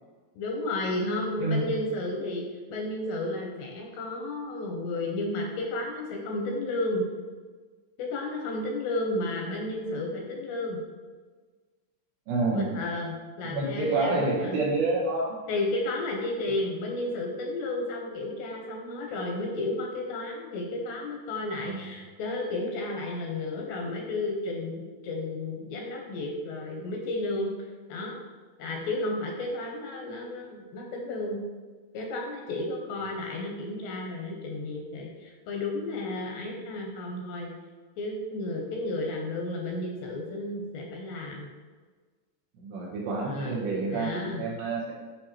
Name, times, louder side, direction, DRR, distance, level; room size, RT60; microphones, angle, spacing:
voice 1, 0.4-7.0 8.0-10.8 12.5-14.6 15.5-27.5 27.9-28.2 28.6-31.4 31.9-37.5 38.0-41.5 43.2-44.4, left 2 dB, 80° left, 0 dB, 2.7 m, -32 dB
voice 2, 1.4-1.7 12.3-12.8 13.4-15.4 21.6-21.9 42.6-44.9, right 3 dB, 70° right, -3 dB, 3.0 m, -28 dB
8.9 x 5.2 x 3.0 m, 1.4 s
omnidirectional pair, 5.4 m